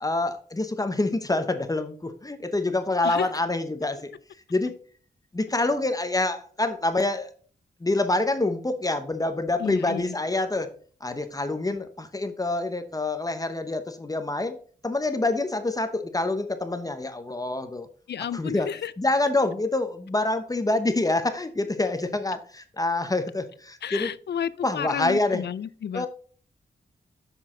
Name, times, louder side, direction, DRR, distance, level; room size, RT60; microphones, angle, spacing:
voice 1, 0.0-4.1 4.5-4.7 5.3-7.3 7.8-10.7 11.0-14.6 14.8-17.9 18.3-18.7 19.0-24.1 24.6-25.4 25.9-26.1, left 2 dB, 20° left, 0.8 m, -26 dB
voice 2, 9.6-10.1 18.1-18.9 23.8-26.1, left 8 dB, 75° left, 0.5 m, -31 dB
7.7 x 6.3 x 3.6 m
wide cardioid pair, 120°, 18 cm